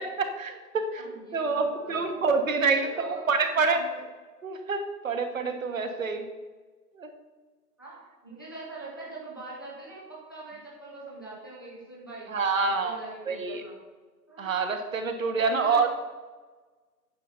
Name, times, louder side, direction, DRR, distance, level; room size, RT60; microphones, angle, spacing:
voice 1, 0.0-1.0 1.3-3.8 4.4-6.3 7.0-7.1 12.3-13.6 14.4-15.9, right 4 dB, 55° right, 6 dB, 1.4 m, -27 dB
voice 2, 1.0-2.2 2.7-4.0 7.8-12.3 12.6-13.7 14.3-14.5 15.3-15.9, right 2 dB, 15° left, -6 dB, 0.7 m, -42 dB
9.3 x 6.1 x 5.4 m, 1.3 s
hypercardioid pair, 160°, 49 cm